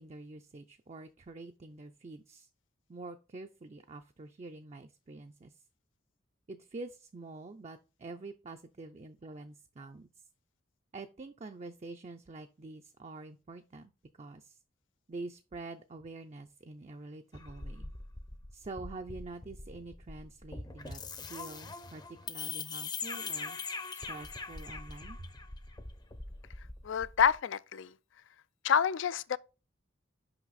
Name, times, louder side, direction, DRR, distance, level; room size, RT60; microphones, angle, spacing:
voice 1, 0.0-2.5 2.9-5.6 6.5-10.2 10.9-13.9 14.2-14.6 15.1-17.9 18.5-23.6 23.9-25.3, right 3 dB, 35° right, 0.4 m, -46 dB
sound 1, 17.3-27.4, left 4 dB, 20° left, 0.6 m, -42 dB
voice 2, 26.8-27.9 28.6-29.4, left 7 dB, 75° left, 0.4 m, -28 dB
5.9 x 5.4 x 4.0 m
head